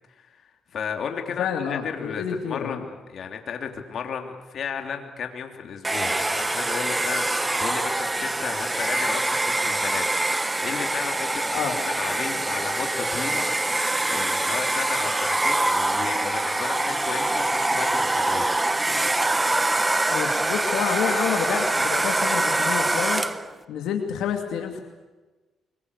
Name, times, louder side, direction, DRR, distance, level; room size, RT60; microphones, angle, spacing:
voice 1, 0.1-18.4, left 6 dB, 60° left, 4 dB, 3.2 m, -34 dB
voice 2, 1.4-2.8 11.5-11.8 20.1-23.2 23.7-24.8, left 7 dB, 85° left, 3 dB, 2.6 m, -28 dB
Domestic sounds home sounds, 5.8-23.5, right 2 dB, 15° right, 1.1 m, -24 dB
25.0 x 22.5 x 8.3 m, 1.2 s
cardioid pair, 90°, 0 cm